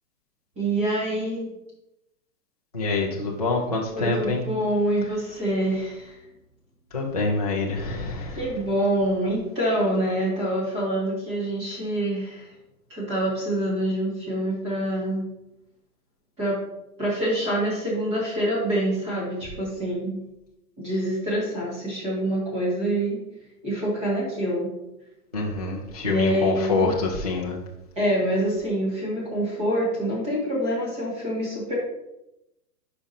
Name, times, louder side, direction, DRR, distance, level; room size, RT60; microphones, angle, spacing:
voice 1, 0.6-1.5 3.9-6.2 8.3-12.5 12.9-15.3 16.4-16.6 17.0-20.2 20.8-23.2 23.6-24.7 26.0-27.0 28.0-31.7, right 1 dB, 15° right, -6 dB, 2.0 m, -26 dB
voice 2, 2.7-4.4 6.9-8.4 25.3-27.6, left 3 dB, 30° left, -3 dB, 0.4 m, -26 dB
9.6 x 5.1 x 2.7 m, 0.90 s
hypercardioid pair, 180°, 46 cm